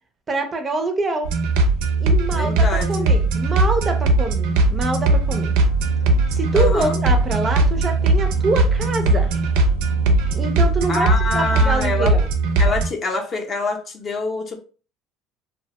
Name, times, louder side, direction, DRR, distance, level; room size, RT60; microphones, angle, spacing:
voice 1, 0.3-1.3 2.0-5.5 6.3-9.3 10.3-12.3, right 2 dB, 25° right, 6 dB, 0.4 m, -25 dB
sound 1, 1.2-12.9, right 2 dB, 85° right, 0.4 m, -19 dB
voice 2, 2.3-3.1 6.5-7.0 10.9-12.1 12.6-14.6, left 3 dB, 35° left, 3 dB, 0.5 m, -25 dB
sound 2, 4.5-10.5, left 1 dB, 85° left, 0.7 m, -34 dB
2.4 x 2.1 x 2.8 m, 0.37 s
cardioid pair, 130°, 0 cm